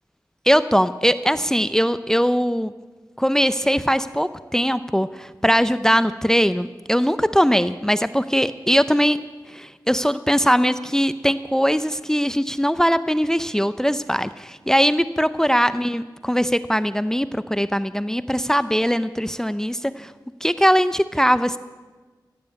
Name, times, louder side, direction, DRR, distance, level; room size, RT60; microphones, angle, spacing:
voice 1, 0.5-2.7 3.2-9.2 9.5-20.1 20.4-21.6, equal, 5° left, 13 dB, 0.5 m, -20 dB
15.0 x 9.2 x 8.3 m, 1.3 s
cardioid pair, 50°, 8 cm